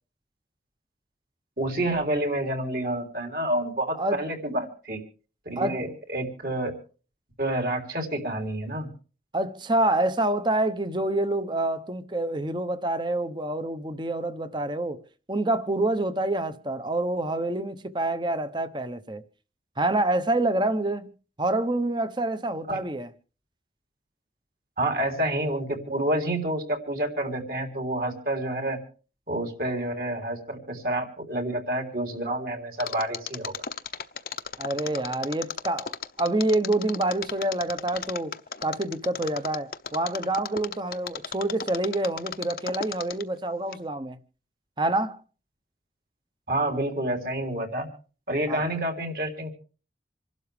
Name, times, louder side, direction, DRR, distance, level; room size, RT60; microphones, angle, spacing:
voice 1, 1.6-5.0 5.4-6.7 7.4-8.9 22.7-22.8 24.8-28.8 29.3-33.5 46.5-47.9 48.3-49.5, right 1 dB, 55° right, 3.4 m, -28 dB
voice 2, 9.3-15.0 15.3-19.2 19.8-21.1 21.4-23.1 34.6-44.2 44.8-45.2 48.5-48.6, right 2 dB, 25° right, 0.9 m, -27 dB
Mechanisms, 32.8-43.4 43.7-43.8, left 7 dB, 55° left, 0.8 m, -34 dB
27.5 x 12.0 x 3.4 m
head